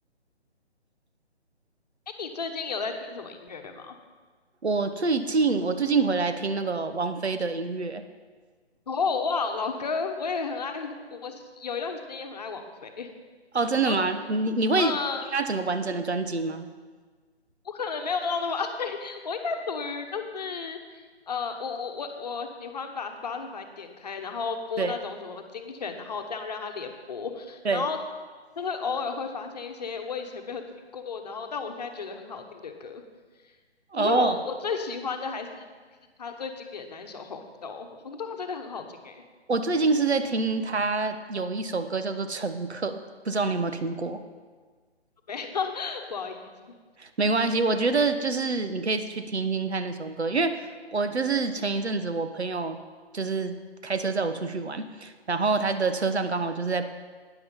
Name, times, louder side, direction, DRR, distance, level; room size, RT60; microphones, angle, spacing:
voice 1, 2.2-4.0 8.9-13.1 13.9-14.2 14.8-15.3 17.6-28.0 28.6-30.6 30.9-33.0 34.0-35.6 36.2-39.2 44.1-44.3 45.3-46.5, left 5 dB, 35° left, 5 dB, 1.1 m, -33 dB
voice 2, 4.6-8.0 13.5-15.0 15.3-16.7 24.8-24.9 27.6-27.9 33.9-34.4 39.5-43.0 43.2-44.2 47.0-52.8 53.1-53.5 53.8-56.9, right 3 dB, 70° right, 9 dB, 1.1 m, -26 dB
13.0 x 9.5 x 5.5 m, 1.5 s
figure-of-eight pair, 150°, 33 cm